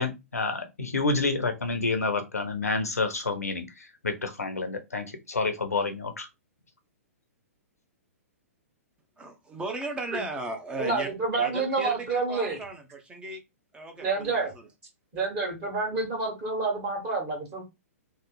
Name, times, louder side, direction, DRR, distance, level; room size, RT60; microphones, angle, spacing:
voice 1, 0.0-3.7 4.0-6.3, left 3 dB, 85° left, 0.8 m, -28 dB
voice 2, 9.2-11.1 11.4-13.4 13.7-14.4, right 2 dB, 10° right, 0.7 m, -36 dB
voice 3, 10.8-12.6 14.0-14.5 15.1-17.6, right 3 dB, 30° right, 1.5 m, -28 dB
3.2 x 2.1 x 3.7 m
figure-of-eight pair, 115°, 8 cm